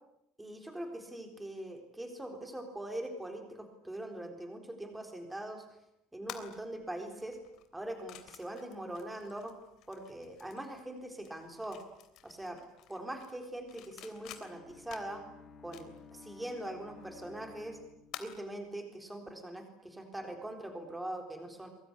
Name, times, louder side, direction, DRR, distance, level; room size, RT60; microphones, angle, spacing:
voice 1, 0.4-5.6 6.1-7.4 7.7-9.5 9.9-11.8 12.2-12.6 12.9-15.2 15.6-17.8 18.2-21.7, right 1 dB, 5° right, 4 dB, 4.0 m, -42 dB
sound 1, 6.2-18.7, left 11 dB, 45° left, 3.2 m, -52 dB
Bowed string instrument, 13.9-18.7, left 5 dB, 25° left, 2.5 m, -55 dB
23.5 x 23.5 x 9.9 m, 0.84 s
cardioid pair, 175°, 0 cm